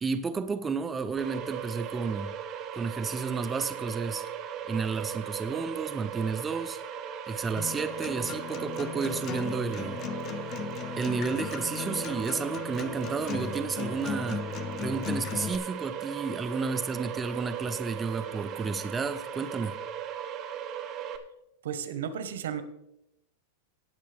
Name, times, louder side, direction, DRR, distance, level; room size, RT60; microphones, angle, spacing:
voice 1, 0.0-2.3 2.7-4.3 4.7-6.8 7.3-10.0 11.0-14.4 14.8-19.8, right 5 dB, 15° right, 10 dB, 0.5 m, -32 dB
sound 1, 1.2-21.2, right 8 dB, 30° right, 0.9 m, -38 dB
Acoustic guitar, 7.6-15.6, left 8 dB, 30° left, 0.7 m, -37 dB
voice 2, 21.6-22.6, right 8 dB, 85° right, 11 dB, 1.2 m, -33 dB
18.5 x 6.5 x 3.5 m, 0.83 s
supercardioid pair, 150°, 0 cm